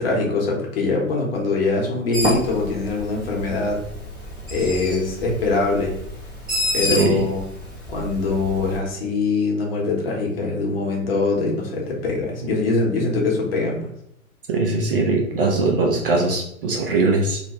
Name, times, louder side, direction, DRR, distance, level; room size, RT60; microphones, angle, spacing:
voice 1, 0.0-3.8 4.5-5.9 6.7-7.4 7.9-13.9, left 3 dB, 45° left, -1 dB, 0.9 m, -23 dB
Bird, 2.1-8.8, left 1 dB, 10° right, 0.8 m, -29 dB
voice 2, 6.8-7.2 14.5-17.4, right 3 dB, 40° right, 0 dB, 0.5 m, -21 dB
2.3 x 2.1 x 2.9 m, 0.74 s
figure-of-eight pair, 110°, 43 cm